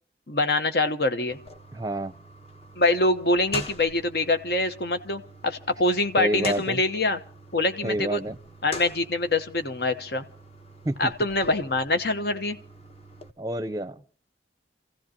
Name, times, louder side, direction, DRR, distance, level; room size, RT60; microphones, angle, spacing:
voice 1, 0.3-1.4 2.8-7.2 7.5-8.2 8.6-10.2 11.0-12.6, left 2 dB, 60° left, 1.1 m, -24 dB
sound 1, 1.3-13.3, left 1 dB, 35° left, 1.1 m, -44 dB
voice 2, 1.7-2.1 6.2-6.8 7.8-8.4 10.8-11.0 13.4-14.0, right 1 dB, 20° right, 0.7 m, -28 dB
29.0 x 15.5 x 2.9 m
head